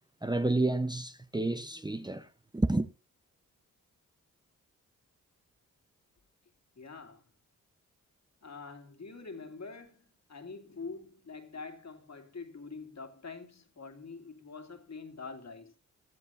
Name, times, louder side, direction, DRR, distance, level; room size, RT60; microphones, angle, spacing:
voice 1, 0.2-2.3 2.5-2.9, right 2 dB, 10° right, 0.9 m, -30 dB
voice 2, 6.7-7.2 8.4-15.7, left 4 dB, 50° left, 2.6 m, -45 dB
18.5 x 12.5 x 2.7 m
supercardioid pair, 45°, 34 cm